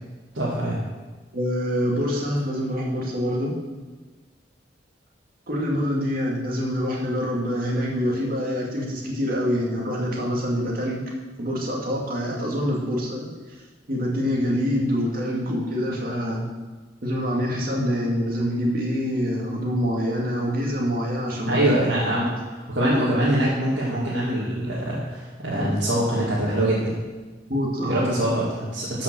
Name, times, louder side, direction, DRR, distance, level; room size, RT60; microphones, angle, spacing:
voice 1, 0.3-0.8 21.5-27.0 27.9-29.0, right 1 dB, 75° right, -8 dB, 2.5 m, -24 dB
voice 2, 1.3-3.6 5.5-11.0 11.4-13.3 13.9-16.4 17.0-21.7 22.1-22.2 25.6-25.7 27.5-28.2, equal, 50° right, -2 dB, 2.4 m, -25 dB
13.0 x 5.8 x 6.2 m, 1.3 s
head